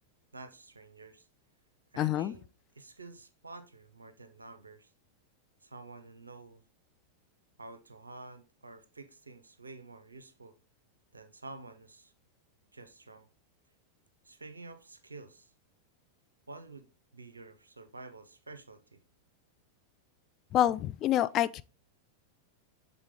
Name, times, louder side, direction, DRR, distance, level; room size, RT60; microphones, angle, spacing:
voice 1, 0.3-1.3 1.9-2.5 2.7-4.9 5.6-6.6 7.6-10.6 11.1-12.1 12.7-13.3 14.2-15.5 16.5-19.0, right 3 dB, 80° right, 0.6 m, -49 dB
voice 2, 2.0-2.3 20.5-21.6, left 12 dB, 35° left, 0.3 m, -27 dB
7.3 x 3.6 x 3.5 m
figure-of-eight pair, 90°, 0 cm